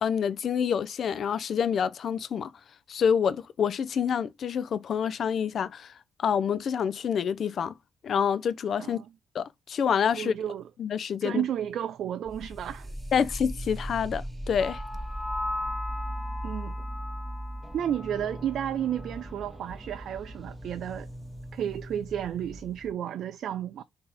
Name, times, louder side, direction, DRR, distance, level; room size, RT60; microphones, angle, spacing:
voice 1, 0.0-2.5 2.9-5.9 6.2-7.7 8.0-9.0 9.3-10.3 10.8-11.4 13.1-14.8, left 7 dB, 65° left, 0.4 m, -27 dB
voice 2, 10.1-10.6 11.2-12.9 16.4-16.8 17.7-21.1 21.5-23.8, right 10 dB, 70° right, 0.4 m, -32 dB
sound 1, 12.2-22.9, equal, 5° left, 1.6 m, -39 dB
sound 2, 14.6-18.6 18.9-19.2, left 1 dB, 20° left, 0.8 m, -37 dB
3.8 x 2.8 x 4.0 m
supercardioid pair, 65°, 0 cm